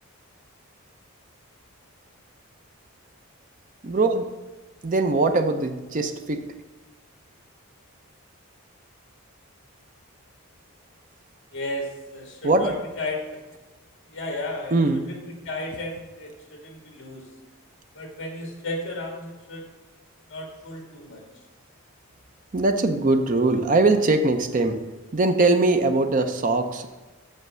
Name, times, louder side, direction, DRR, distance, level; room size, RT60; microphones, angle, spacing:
voice 1, 3.8-4.3 4.8-6.4 12.4-12.7 14.7-15.1 22.5-24.8 25.1-26.9, right 2 dB, 35° right, 7 dB, 0.5 m, -21 dB
voice 2, 11.5-13.4 14.1-14.7 15.1-17.3 17.9-19.6 20.3-21.2, left 1 dB, 55° left, 1 dB, 1.9 m, -34 dB
6.6 x 5.4 x 6.2 m, 1.2 s
head